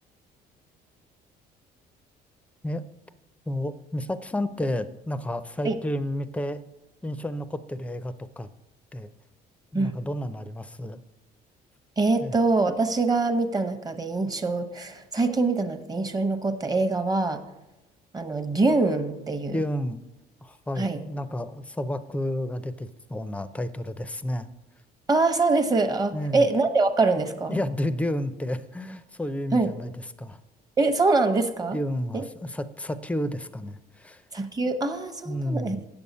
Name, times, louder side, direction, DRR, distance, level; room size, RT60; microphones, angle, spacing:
voice 1, 3.5-6.6 7.0-8.5 8.9-9.1 9.7-11.0 12.2-12.4 19.5-20.0 20.4-24.5 26.1-26.5 27.5-30.4 31.7-34.2 35.2-35.8, left 1 dB, 10° left, 12 dB, 0.5 m, -31 dB
voice 2, 12.0-17.4 18.1-19.6 20.8-21.0 25.1-27.6 29.5-29.7 30.8-31.8 32.1-32.2 34.3-35.8, right 3 dB, 20° right, 6 dB, 0.9 m, -24 dB
8.9 x 7.1 x 5.5 m, 1.0 s
cardioid pair, 110°, 17 cm